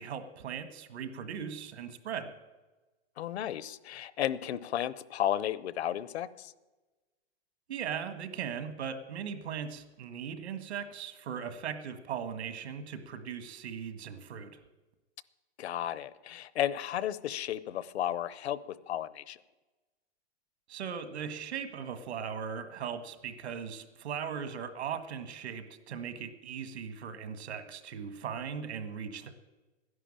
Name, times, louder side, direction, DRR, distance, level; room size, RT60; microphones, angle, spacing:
voice 1, 0.0-2.3 7.7-14.6 20.7-29.3, right 7 dB, 80° right, 10 dB, 1.8 m, -38 dB
voice 2, 3.2-6.5 15.6-19.4, left 11 dB, 75° left, 17 dB, 0.9 m, -33 dB
12.0 x 11.0 x 8.7 m, 1.2 s
hypercardioid pair, 155°, 33 cm